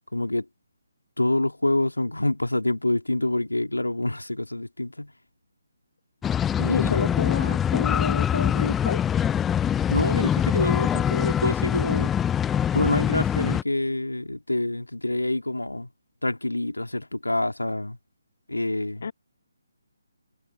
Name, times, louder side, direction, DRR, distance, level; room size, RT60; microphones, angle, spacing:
voice 1, 0.1-0.5 1.2-5.1 6.6-7.1 9.9-12.1 12.7-15.9 16.2-18.0 18.5-19.1, left 1 dB, 85° left, 2.2 m, -26 dB
sound 1, 6.2-13.6, left 9 dB, 10° left, 0.6 m, -24 dB
voice 2, 6.7-9.0 19.0-19.1, left 5 dB, 55° left, 1.4 m, -29 dB
figure-of-eight pair, 145°, 0 cm